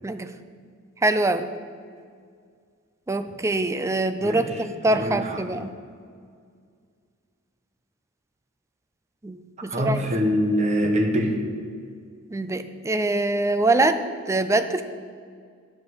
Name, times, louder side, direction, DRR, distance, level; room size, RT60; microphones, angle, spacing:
voice 1, 0.0-0.3 1.0-1.5 3.1-5.7 9.2-10.0 12.3-14.8, right 2 dB, 15° right, 10 dB, 0.4 m, -24 dB
voice 2, 4.9-5.4 9.7-11.4, equal, 35° right, 2 dB, 1.0 m, -24 dB
8.6 x 7.4 x 6.4 m, 2.1 s
head